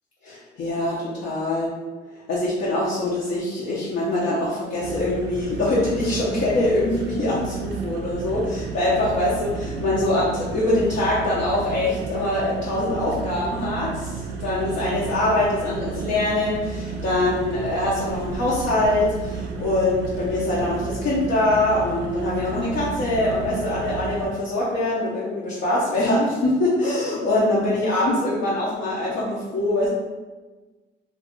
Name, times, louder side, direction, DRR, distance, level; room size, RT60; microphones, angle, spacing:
voice 1, 0.2-1.7 2.3-29.9, left 1 dB, 60° left, -7 dB, 0.7 m, -23 dB
sound 1, 4.8-24.3, right 5 dB, 80° right, 0.5 m, -32 dB
2.6 x 2.4 x 3.7 m, 1.2 s
cardioid pair, 125°, 20 cm